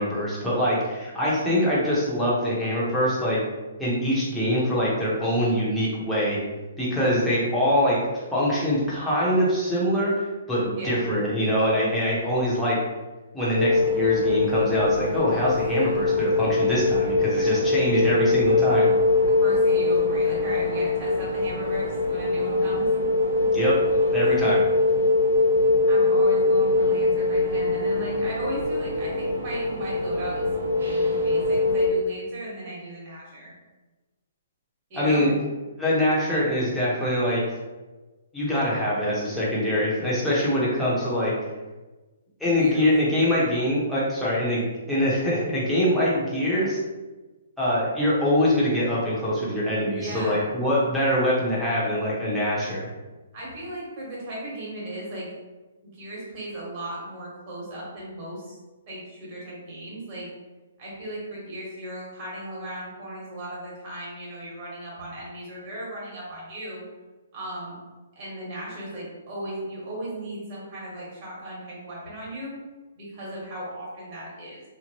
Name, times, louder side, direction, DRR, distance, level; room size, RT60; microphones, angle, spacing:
voice 1, 0.0-3.4 3.8-6.4 6.8-8.0 8.3-12.8 13.3-18.9 23.5-23.8 24.1-24.6 35.0-35.3 35.8-37.4 38.3-41.3 42.4-46.8 47.6-52.9, equal, ahead, -9 dB, 0.9 m, -24 dB
sound 1, 13.6-31.9, left 3 dB, 85° right, 0.9 m, -22 dB
voice 2, 19.4-22.9 24.4-24.6 25.9-33.5 34.9-35.3 42.4-42.9 49.9-50.4 53.3-55.3 55.8-58.6 58.9-60.3 60.8-66.8 67.3-67.8 68.1-72.5 72.9-74.6, right 1 dB, 35° right, -5 dB, 1.5 m, -36 dB
3.3 x 3.0 x 3.0 m, 1.2 s
hypercardioid pair, 160°, 0 cm